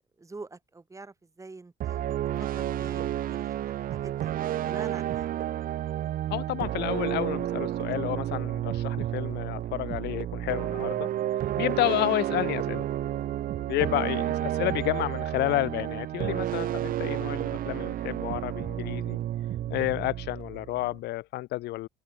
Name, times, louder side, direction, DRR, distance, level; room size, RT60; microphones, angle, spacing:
voice 1, 0.2-2.1 2.4-4.3 4.7-5.3 13.9-14.1, right 3 dB, 20° right, 7.2 m, -45 dB
sound 1, 1.8-21.0, right 12 dB, 55° right, 0.8 m, -31 dB
voice 2, 6.3-11.1 11.6-12.8 13.7-19.2 19.7-21.9, left 17 dB, 80° left, 1.1 m, -30 dB
cardioid pair, 110°, 17 cm